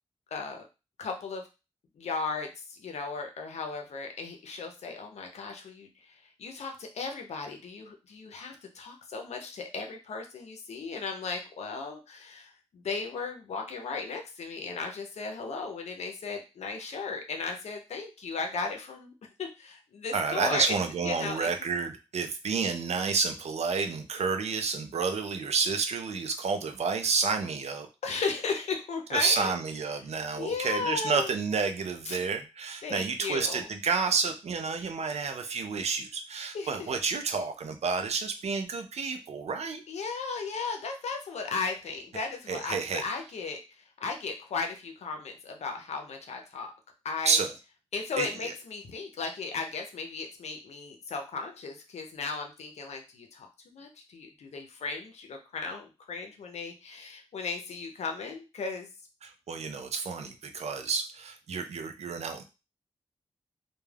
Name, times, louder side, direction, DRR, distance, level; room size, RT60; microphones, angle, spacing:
voice 1, 0.3-0.7 1.0-1.4 2.0-5.9 6.4-19.1 19.4-20.8 21.0-21.5 28.0-29.5 30.4-31.3 32.1-32.2 32.8-33.7 36.5-36.9 39.9-43.6 44.0-46.7 47.0-47.4 47.9-58.9, left 4 dB, 85° left, 4 dB, 0.6 m, -36 dB
voice 2, 20.1-27.9 29.1-39.8 42.5-43.0 47.2-47.5 48.2-48.5 59.2-62.4, right 5 dB, 80° right, 7 dB, 0.5 m, -30 dB
2.2 x 2.2 x 3.3 m, 0.29 s
cardioid pair, 55°, 11 cm